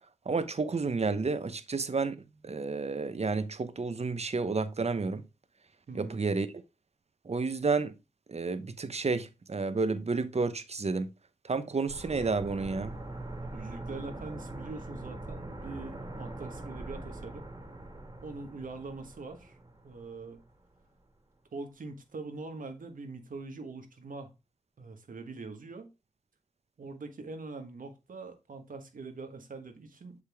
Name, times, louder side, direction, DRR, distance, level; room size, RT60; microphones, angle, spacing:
voice 1, 0.3-2.2 2.4-5.2 5.9-6.5 7.2-7.9 8.3-11.1 11.4-12.9, right 4 dB, 50° right, 0.8 m, -30 dB
voice 2, 5.9-6.2 13.4-17.4 18.2-19.6 19.8-20.4 21.5-24.3 24.8-25.9 26.8-30.2, right 3 dB, 80° right, 1.3 m, -43 dB
sound 1, 11.9-20.6 20.9-21.0, right 2 dB, 30° right, 1.8 m, -43 dB
6.6 x 4.8 x 3.5 m
cardioid pair, 45°, 14 cm